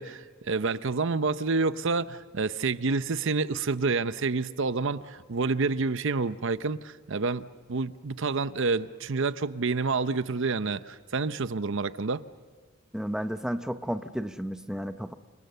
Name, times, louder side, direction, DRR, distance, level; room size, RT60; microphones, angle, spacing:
voice 1, 0.0-12.2, right 4 dB, 60° right, 13 dB, 0.7 m, -28 dB
voice 2, 12.9-15.1, equal, 5° right, 9 dB, 0.7 m, -32 dB
30.0 x 26.5 x 6.9 m, 1.4 s
head